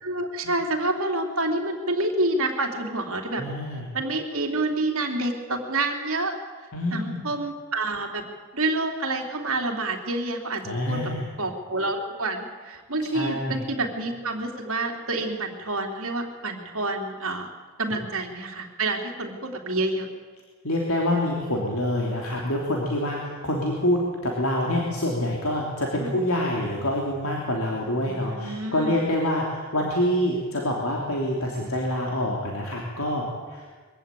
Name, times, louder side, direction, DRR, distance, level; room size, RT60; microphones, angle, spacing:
voice 1, 0.0-3.4 3.9-6.4 6.9-8.2 8.5-10.6 10.9-11.0 11.4-17.5 17.8-20.1 26.0-26.2 28.0-29.0, right 2 dB, 65° right, 3 dB, 3.0 m, -28 dB
voice 2, 3.4-3.9 6.7-7.2 10.6-11.3 13.1-13.6 20.6-33.7, left 1 dB, 75° left, -1 dB, 3.1 m, -26 dB
23.0 x 15.5 x 9.1 m, 1.5 s
head